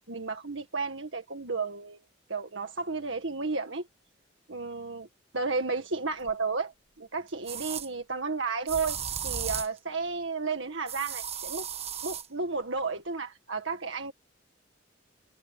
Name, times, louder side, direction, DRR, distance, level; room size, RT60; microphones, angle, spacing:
voice 1, 0.1-2.0 2.3-3.8 4.5-5.1 5.3-9.0 9.2-11.7 12.0-14.1, right 4 dB, 65° right, 1.9 m, -32 dB
sound 1, 6.3-6.4 7.5-7.9 8.7-9.8 10.9-12.3, right 8 dB, 30° right, 1.3 m, -35 dB
head